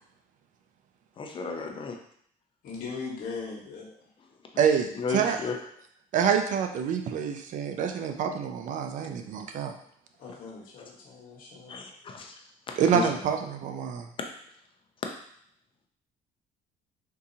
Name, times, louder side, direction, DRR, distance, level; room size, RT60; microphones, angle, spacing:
voice 1, 1.2-2.0 4.9-5.6 11.7-12.4 12.7-13.1, left 4 dB, 35° left, 3 dB, 0.6 m, -33 dB
voice 2, 2.6-4.1 10.2-11.8, left 4 dB, 65° left, -3 dB, 1.3 m, -39 dB
voice 3, 4.6-5.4 6.1-9.7 12.8-14.1, right 7 dB, 55° right, 5 dB, 0.5 m, -27 dB
3.7 x 2.8 x 2.7 m, 0.66 s
cardioid pair, 110°, 15 cm